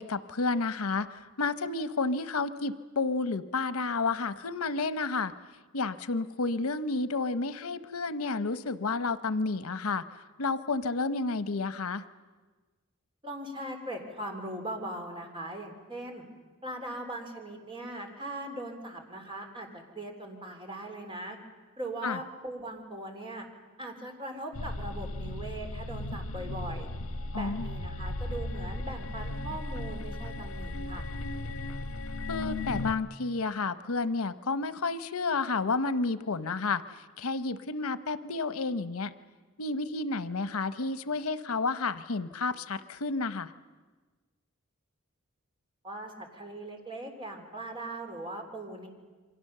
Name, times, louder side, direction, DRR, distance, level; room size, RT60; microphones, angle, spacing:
voice 1, 0.0-5.3 5.7-10.0 10.4-12.0 22.0-22.2 27.3-27.7 32.3-39.1 39.6-43.5, left 3 dB, 90° left, 13 dB, 0.9 m, -31 dB
voice 2, 13.2-16.2 16.6-21.4 21.8-23.5 23.8-26.9 27.3-31.1 45.8-48.9, right 1 dB, 25° right, 3 dB, 3.4 m, -40 dB
sound 1, 24.5-32.9, left 2 dB, 70° left, 1.4 m, -36 dB
28.5 x 24.0 x 6.7 m, 1.3 s
head